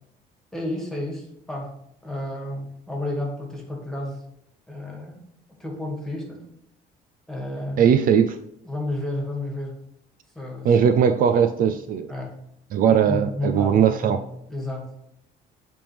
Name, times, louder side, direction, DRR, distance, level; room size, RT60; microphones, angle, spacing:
voice 1, 0.5-1.7 2.0-4.2 4.7-5.2 5.6-6.4 7.3-7.9 8.6-9.7 10.3-10.7 11.6-11.7 12.1-12.4 12.9-14.2 14.5-14.9, left 1 dB, 5° left, 0 dB, 1.9 m, -31 dB
voice 2, 7.8-8.4 10.6-12.1 12.7-14.2, right 8 dB, 55° right, 9 dB, 0.4 m, -19 dB
8.6 x 3.5 x 3.4 m, 0.77 s
cardioid pair, 110°, 17 cm